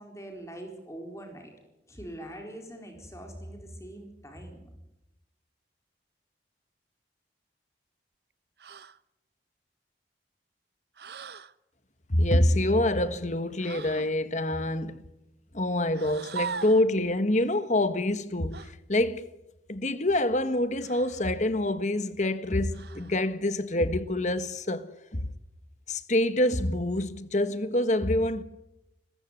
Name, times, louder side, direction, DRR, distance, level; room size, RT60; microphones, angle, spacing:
voice 1, 0.0-1.5 1.9-4.7, right 1 dB, 15° left, 4.2 m, -43 dB
sound 1, 8.6-9.0 11.0-11.5 13.6-14.1 15.9-16.9 18.5-18.7 20.8-21.3 22.7-23.2, right 6 dB, 65° right, 0.8 m, -39 dB
voice 2, 12.1-15.0 15.5-19.3 19.7-25.3 25.9-28.4, left 1 dB, 45° left, 1.5 m, -26 dB
29.0 x 15.0 x 9.7 m
head